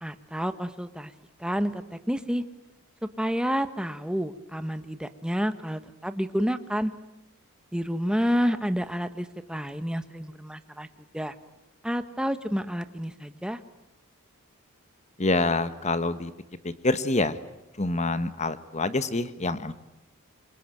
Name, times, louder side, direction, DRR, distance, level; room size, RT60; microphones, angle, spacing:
voice 1, 0.0-1.1 1.4-2.4 3.0-6.9 7.7-10.9 11.1-11.3 11.8-13.6, equal, 5° right, 10 dB, 1.2 m, -29 dB
voice 2, 15.2-16.3 16.6-17.4 17.8-19.7, left 2 dB, 30° left, 13 dB, 1.3 m, -26 dB
26.5 x 23.5 x 9.2 m, 0.94 s
head